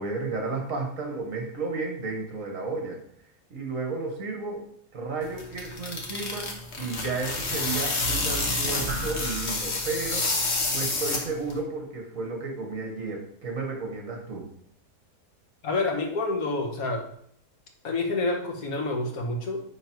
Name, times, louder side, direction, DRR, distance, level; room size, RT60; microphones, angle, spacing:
voice 1, 0.0-3.0 3.5-4.6 4.9-6.5 6.8-14.5, right 3 dB, 55° right, 1 dB, 1.8 m, -33 dB
sound 1, 5.2-11.6, left 2 dB, 45° left, 1.4 m, -29 dB
sound 2, 8.9-10.4, equal, 75° right, 1.5 m, -37 dB
voice 2, 15.6-17.1 17.8-19.6, left 2 dB, 65° left, 3 dB, 1.5 m, -28 dB
9.8 x 3.5 x 4.5 m, 0.66 s
omnidirectional pair, 1.7 m